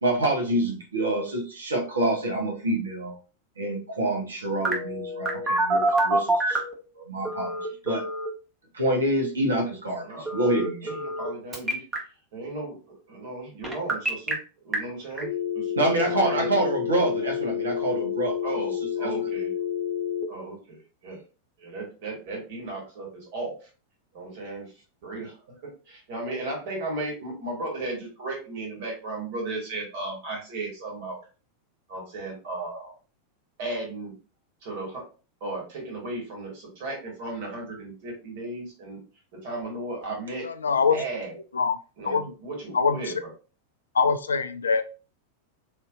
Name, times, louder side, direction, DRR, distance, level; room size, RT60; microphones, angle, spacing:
voice 1, 0.0-3.1 3.6-6.6 7.0-7.5 7.8-8.0 8.7-10.0 10.3-10.9 15.8-18.3 19.0-19.1, right 1 dB, 70° right, 1 dB, 0.9 m, -26 dB
Telephone, 4.6-6.7 7.2-8.3 10.3-11.3 11.5-12.0 13.6-14.3 14.7-14.8 15.2-20.2, left 2 dB, 15° right, 0.9 m, -28 dB
voice 2, 10.0-10.4 10.8-11.8 12.3-14.4 14.6-15.7 16.1-16.5 18.4-19.5 20.3-21.2 21.6-23.7 24.1-24.7 25.0-31.2 31.9-32.9 33.6-34.1 34.6-35.0 35.4-39.0 39.3-40.4 40.9-41.3 42.0-43.3, right 2 dB, 50° right, -1 dB, 1.6 m, -35 dB
voice 3, 40.4-41.0 41.5-41.8 42.1-42.3 42.7-43.0 44.0-44.9, left 5 dB, 70° left, 10 dB, 0.3 m, -23 dB
3.5 x 2.7 x 2.3 m, 0.35 s
figure-of-eight pair, 90°, 0 cm